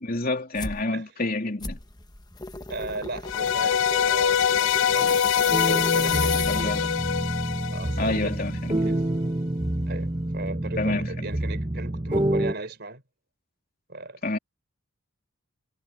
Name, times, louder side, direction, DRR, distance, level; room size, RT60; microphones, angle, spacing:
voice 1, 0.0-1.8 6.5-6.8 8.0-8.8 10.8-11.3 14.2-14.4, left 2 dB, 40° left, 3.4 m, -28 dB
sound 1, 0.5-0.8 1.6-7.0, left 3 dB, 20° left, 1.1 m, -35 dB
voice 2, 2.7-6.9 7.7-8.4 8.7-9.0 9.9-13.0 13.9-14.2, right 2 dB, 50° right, 4.0 m, -37 dB
sound 2, 3.3-8.5, left 8 dB, 65° left, 0.4 m, -24 dB
sound 3, 5.5-12.5, right 1 dB, 20° right, 1.0 m, -28 dB
head